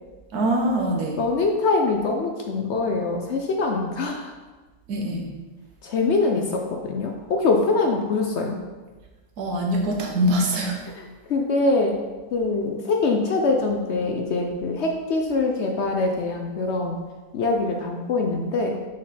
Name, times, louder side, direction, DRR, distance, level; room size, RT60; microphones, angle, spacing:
voice 1, 0.3-1.2 4.9-5.3 9.4-10.8, right 1 dB, 85° right, 1 dB, 1.6 m, -23 dB
voice 2, 1.2-4.3 5.8-8.5 10.9-12.0 12.3-17.0 17.3-18.8, left 3 dB, 60° left, 2 dB, 0.7 m, -23 dB
5.7 x 5.2 x 4.1 m, 1.3 s
omnidirectional pair, 1.6 m